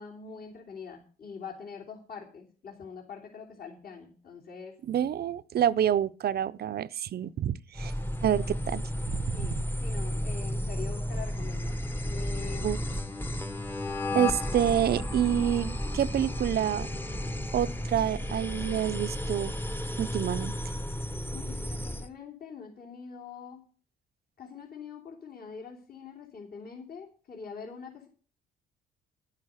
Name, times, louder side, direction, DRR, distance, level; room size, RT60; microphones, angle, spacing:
voice 1, 0.0-4.8 9.3-12.7 21.3-23.6 24.4-28.1, left 6 dB, 50° left, 3.2 m, -44 dB
voice 2, 4.9-7.9 8.2-8.8 9.1-9.5 12.6-12.8 14.1-16.9 17.5-19.5 20.0-20.5, right 10 dB, 55° right, 0.6 m, -28 dB
bed w alarm, 7.7-22.1, left 1 dB, 10° left, 0.9 m, -33 dB
10.5 x 9.7 x 6.5 m
cardioid pair, 90°, 20 cm